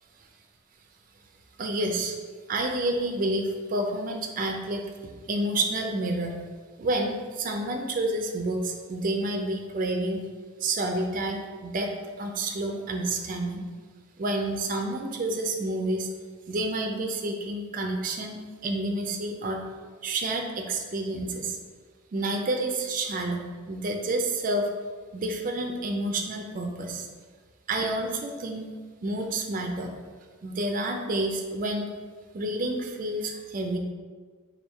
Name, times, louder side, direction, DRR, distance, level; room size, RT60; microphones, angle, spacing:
voice 1, 1.6-2.2 2.5-6.3 6.8-10.2 10.6-11.9 12.2-13.6 14.2-16.1 16.5-19.6 20.0-21.6 22.1-24.7 25.1-27.1 27.7-28.7 29.0-29.9 30.4-31.9 32.3-33.8, right 2 dB, 40° right, 3 dB, 0.4 m, -29 dB
3.5 x 2.3 x 4.4 m, 1.5 s
head